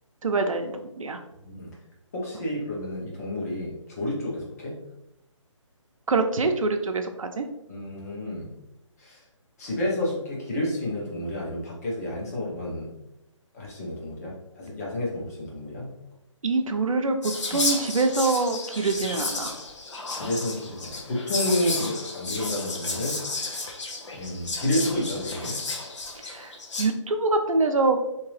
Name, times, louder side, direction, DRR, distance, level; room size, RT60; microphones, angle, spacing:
voice 1, 0.2-1.2 6.1-7.5 16.4-17.2 17.5-19.6 21.7-21.9 26.2-28.0, right 3 dB, 90° right, 5 dB, 0.6 m, -25 dB
voice 2, 2.1-4.7 7.7-8.5 9.0-9.2 9.6-12.9 13.5-15.9 20.1-23.2 24.1-25.6, left 1 dB, 30° left, -4 dB, 1.1 m, -30 dB
Whispering, 17.2-26.8, left 3 dB, 65° left, 0.9 m, -32 dB
3.7 x 2.9 x 3.2 m, 0.89 s
hypercardioid pair, 165°, 17 cm